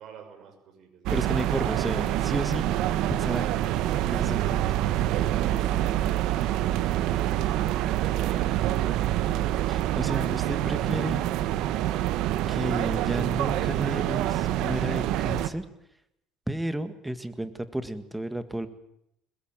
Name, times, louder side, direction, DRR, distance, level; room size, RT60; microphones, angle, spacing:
voice 1, 0.0-1.5 5.0-7.3 7.9-9.0, right 7 dB, 55° right, 5 dB, 6.5 m, -47 dB
voice 2, 1.1-2.6 3.1-3.5 4.1-4.6 9.7-11.2 12.5-15.6 16.5-18.7, right 1 dB, 5° right, 11 dB, 1.9 m, -32 dB
sound 1, 1.1-15.5, right 13 dB, 70° right, 1.4 m, -26 dB
21.5 x 21.0 x 9.0 m, 0.79 s
cardioid pair, 125°, 0 cm